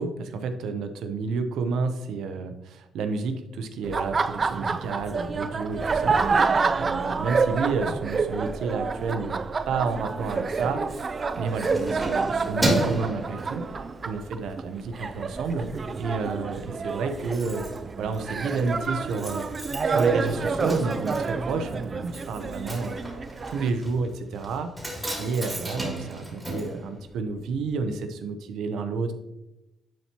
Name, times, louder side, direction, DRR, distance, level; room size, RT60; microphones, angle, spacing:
voice 1, 0.0-9.4 9.7-13.7 14.0-15.7 16.0-17.7 18.0-19.5 19.8-23.0 23.5-24.7 25.2-29.1, right 4 dB, 80° right, 7 dB, 0.7 m, -30 dB
Laughter, 3.8-23.7, right 4 dB, 35° right, 0.4 m, -28 dB
Keys jangling, 11.1-14.1 14.6-14.8 15.1-15.8 16.1-16.2 16.4-16.5 16.7-27.6 27.8-27.9, right 1 dB, 10° right, 2.7 m, -33 dB
10.5 x 4.4 x 2.9 m, 0.94 s
cardioid pair, 90°, 0 cm